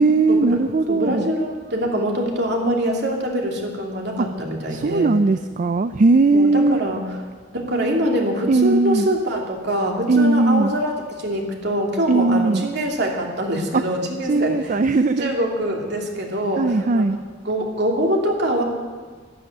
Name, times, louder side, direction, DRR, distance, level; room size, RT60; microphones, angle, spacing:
voice 1, 0.0-1.3 4.2-4.3 4.7-6.8 8.5-9.1 10.1-10.7 12.1-12.7 13.7-13.8 14.2-15.4 16.6-17.2, right 3 dB, 40° right, 11 dB, 0.4 m, -18 dB
voice 2, 0.9-5.1 6.3-7.1 7.5-14.8 15.2-17.1 17.4-18.6, equal, 60° right, 0 dB, 2.8 m, -24 dB
12.0 x 11.5 x 9.0 m, 1.5 s
head